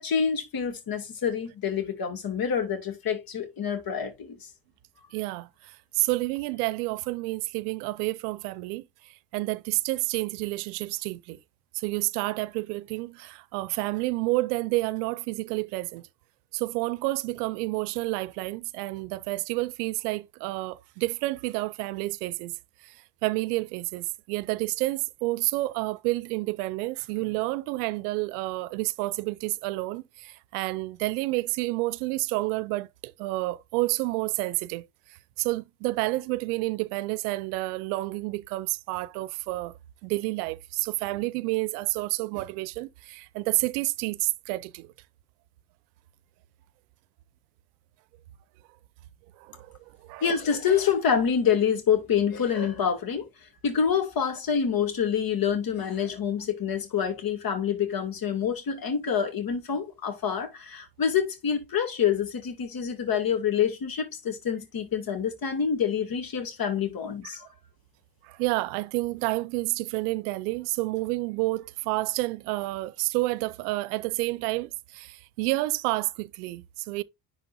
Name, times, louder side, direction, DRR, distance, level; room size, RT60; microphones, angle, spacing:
voice 1, 0.0-4.5 50.2-67.5, left 7 dB, 50° left, 2.5 m, -27 dB
voice 2, 5.1-11.4 11.7-16.1 16.5-22.6 22.8-34.9 35.4-39.7 40.0-44.9 49.4-50.2 67.2-67.4 68.2-77.0, right 21 dB, 80° right, 0.6 m, -29 dB
10.5 x 4.3 x 2.7 m
hypercardioid pair, 55°, 45 cm